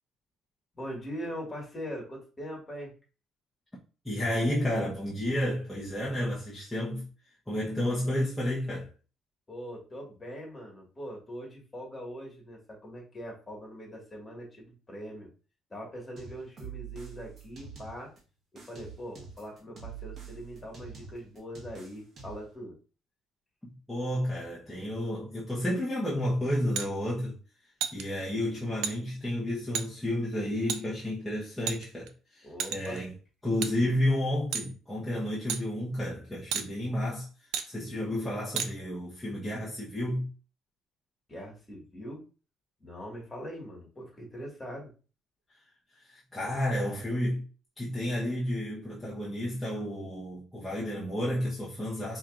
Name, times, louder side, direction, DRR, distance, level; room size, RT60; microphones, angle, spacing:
voice 1, 0.7-2.9 9.5-15.3 15.7-18.1 18.5-22.7 32.4-33.1 41.3-42.2 42.8-44.9, equal, 20° left, 2.0 m, -42 dB
voice 2, 4.0-7.1 7.5-8.9 23.6-27.4 27.9-33.1 33.4-37.3 37.6-40.3 46.1-47.4 47.8-52.2, left 1 dB, ahead, 1.1 m, -31 dB
sound 1, 16.2-18.2 18.6-22.5, right 7 dB, 40° right, 1.5 m, -45 dB
sound 2, 26.7-26.9 27.8-28.0 28.8-28.9 29.7-29.9 30.7-30.8 31.7-32.1 32.6-33.0 33.6-33.7 34.5-34.7 35.5-35.6 36.5-36.7 37.5-37.7 38.6-38.7, right 8 dB, 85° right, 0.4 m, -31 dB
5.2 x 3.0 x 2.5 m
cardioid pair, 130°, 0 cm